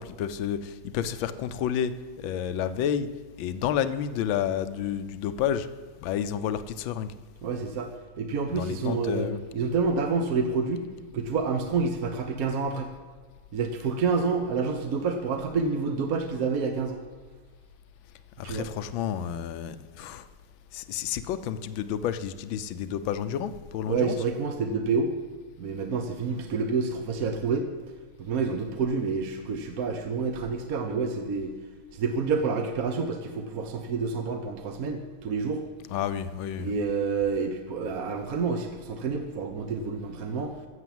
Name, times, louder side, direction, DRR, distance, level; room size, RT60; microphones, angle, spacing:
voice 1, 0.0-1.9 2.2-3.1 3.4-5.7 6.0-7.1 8.5-9.4 18.4-20.3 20.7-24.3 35.9-36.7, left 9 dB, 75° left, 1.4 m, -30 dB
voice 2, 7.4-7.9 8.2-9.3 9.5-10.9 11.1-12.9 13.5-17.0 18.4-18.7 23.9-25.1 25.6-27.7 28.2-31.5 31.9-35.6 36.6-40.5, right 4 dB, 55° right, 1.2 m, -28 dB
14.0 x 7.1 x 7.7 m
omnidirectional pair, 2.3 m